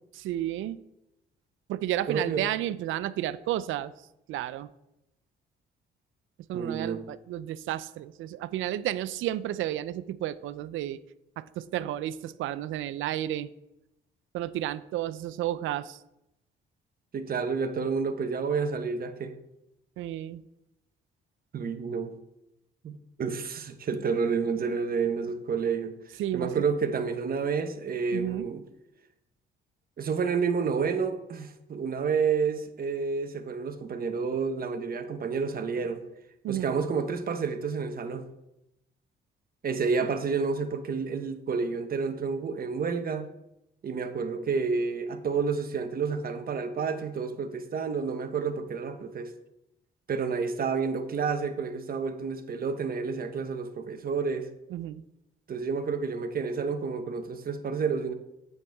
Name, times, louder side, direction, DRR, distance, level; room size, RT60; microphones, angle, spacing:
voice 1, 0.1-0.8 1.7-3.9 4.3-4.7 6.5-11.0 11.4-13.5 14.3-16.0 20.0-20.4 26.2-26.6 28.1-28.5 36.4-36.7 54.7-55.0, right 13 dB, 80° right, 0.5 m, -32 dB
voice 2, 2.1-2.4 6.5-7.0 17.1-19.4 21.5-22.1 22.8-26.0 26.3-28.6 30.0-36.0 36.5-38.3 39.6-43.3 43.8-49.3 50.1-54.5 55.5-58.1, right 5 dB, 50° right, 1.1 m, -30 dB
8.9 x 7.9 x 3.5 m
cardioid pair, 90°, 20 cm